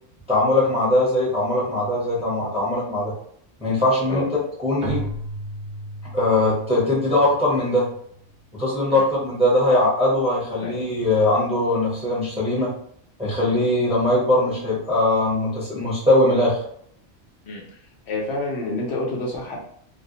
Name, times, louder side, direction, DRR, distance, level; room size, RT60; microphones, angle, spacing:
voice 1, 0.3-3.1 3.6-4.3 4.6-5.1 6.1-7.9 8.5-12.7 13.2-16.6, left 1 dB, 5° right, -7 dB, 0.7 m, -21 dB
Keyboard (musical), 4.8-8.3, right 2 dB, 60° right, 0.8 m, -35 dB
voice 2, 18.1-19.6, left 2 dB, 75° left, -2 dB, 0.9 m, -28 dB
2.4 x 2.0 x 2.7 m, 0.65 s
omnidirectional pair, 1.1 m